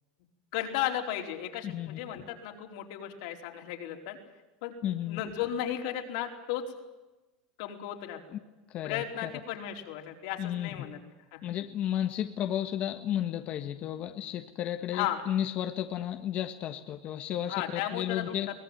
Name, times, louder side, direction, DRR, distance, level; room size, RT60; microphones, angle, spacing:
voice 1, 0.5-4.2 4.6-4.7 5.1-6.6 7.6-8.2 8.8-11.0 11.3-11.4 14.9-15.2 17.5-18.3, left 11 dB, 70° left, 2 dB, 4.6 m, -34 dB
voice 2, 1.6-2.0 4.8-5.2 8.3-8.4 8.7-9.3 10.4-10.7 11.4-18.5, left 11 dB, 40° left, 6 dB, 1.5 m, -33 dB
24.0 x 18.5 x 9.3 m, 1.1 s
supercardioid pair, 135°, 3 cm